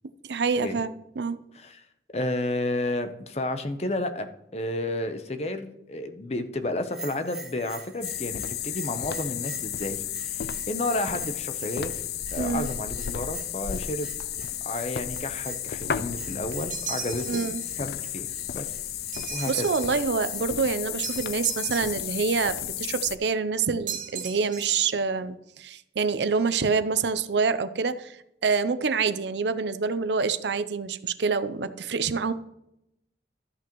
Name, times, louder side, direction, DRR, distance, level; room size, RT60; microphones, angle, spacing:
voice 1, 0.2-0.9 1.2-1.4 12.4-12.7 17.3-17.6 19.5-28.2 28.4-32.3, right 5 dB, 85° right, 13 dB, 0.6 m, -26 dB
voice 2, 2.1-11.9 12.3-14.1 14.6-17.4 17.8-18.3 18.5-18.7 19.3-19.7, left 1 dB, 35° left, 9 dB, 0.7 m, -31 dB
Bell, 6.9-20.6, right 2 dB, 5° right, 1.1 m, -45 dB
sound 1, 8.0-23.2, left 10 dB, 65° left, 0.4 m, -33 dB
sound 2, 16.7-17.7 19.1-20.0 21.0-22.2 23.9-24.9, right 8 dB, 50° right, 1.9 m, -37 dB
12.5 x 8.5 x 3.0 m, 0.82 s
head